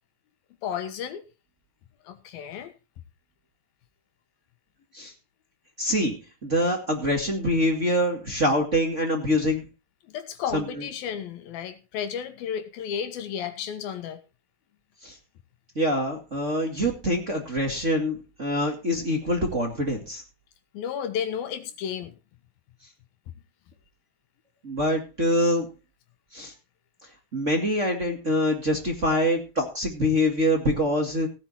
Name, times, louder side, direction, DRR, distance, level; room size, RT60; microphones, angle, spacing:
voice 1, 0.6-1.2 2.0-2.7 10.1-14.2 20.7-22.1, left 8 dB, 85° left, 3.3 m, -32 dB
voice 2, 5.8-6.2 6.4-9.7 10.5-10.9 15.0-15.2 15.8-20.2 24.6-25.7 26.3-26.5 27.3-31.3, equal, 25° right, 2.0 m, -25 dB
17.5 x 9.1 x 4.3 m
omnidirectional pair, 4.1 m